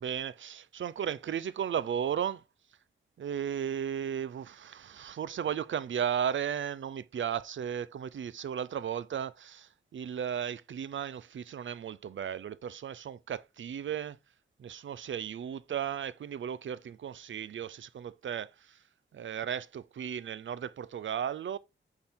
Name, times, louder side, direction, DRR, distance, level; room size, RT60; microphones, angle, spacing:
voice 1, 0.0-2.4 3.2-14.2 14.6-18.8 19.1-21.6, right 8 dB, 75° right, 0.6 m, -35 dB
8.6 x 3.9 x 4.3 m
wide cardioid pair, 155°, 20 cm